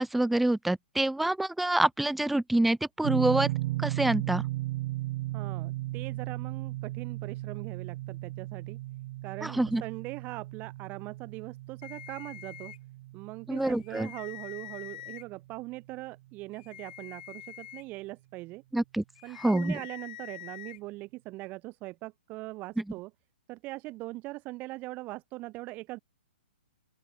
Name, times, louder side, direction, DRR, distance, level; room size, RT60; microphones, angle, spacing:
voice 1, 0.0-3.5 3.8-4.4 9.4-9.8 13.5-14.1 18.7-19.0 19.4-19.7, right 1 dB, ahead, 0.3 m, -26 dB
sound 1, 3.0-16.0, right 17 dB, 45° right, 1.2 m, -36 dB
voice 2, 5.3-8.8 9.2-12.7 13.1-18.6 19.2-23.1 23.5-26.0, right 20 dB, 30° right, 6.3 m, -41 dB
sound 2, 11.8-12.8 13.6-15.2 16.5-17.8 19.2-20.8, left 13 dB, 50° left, 7.5 m, -45 dB
open air
hypercardioid pair, 135°, 6 cm